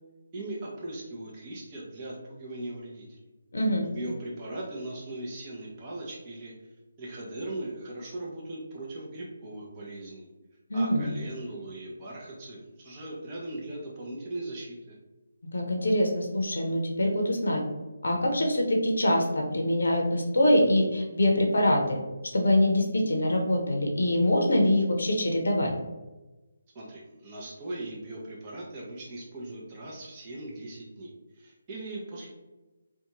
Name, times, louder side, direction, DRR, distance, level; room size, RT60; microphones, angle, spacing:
voice 1, 0.3-3.2 3.8-6.5 7.0-10.3 10.7-15.0 26.7-32.3, right 1 dB, 25° right, -5 dB, 0.6 m, -39 dB
voice 2, 3.5-3.8 10.7-11.1 15.5-17.6 18.0-22.0 22.3-25.7, left 1 dB, 70° left, 1 dB, 0.6 m, -24 dB
2.5 x 2.2 x 2.9 m, 1.1 s
figure-of-eight pair, 155°, 0 cm